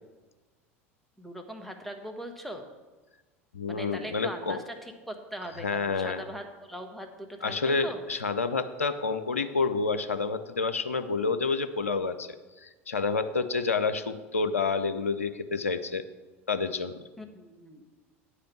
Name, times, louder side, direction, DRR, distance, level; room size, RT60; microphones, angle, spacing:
voice 1, 1.2-2.7 3.7-8.0 17.2-17.8, equal, ahead, 4 dB, 1.2 m, -40 dB
voice 2, 3.5-4.6 5.6-6.2 7.4-12.4 12.6-16.0 16.5-17.0, left 4 dB, 85° left, 11 dB, 0.5 m, -29 dB
9.4 x 5.0 x 5.9 m, 1.2 s
figure-of-eight pair, 75°, 7 cm